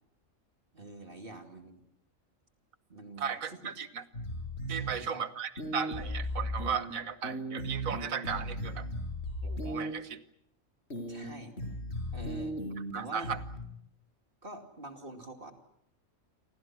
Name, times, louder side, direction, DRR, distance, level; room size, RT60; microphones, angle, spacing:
voice 1, 0.7-1.8 2.9-3.7 4.7-5.2 11.1-11.5 12.1-12.6 12.9-13.3 14.4-15.5, right 2 dB, 40° right, 5 dB, 2.7 m, -46 dB
voice 2, 3.2-4.0 4.7-8.9 9.4-10.2 12.9-13.4, right 7 dB, 90° right, 11 dB, 1.6 m, -36 dB
sound 1, 4.1-4.9 5.6-6.9 7.2-9.9 10.9-11.2 11.6-12.9 13.2-13.6, equal, 55° left, 6.5 m, -36 dB
29.5 x 24.5 x 6.1 m, 0.73 s
omnidirectional pair, 1.4 m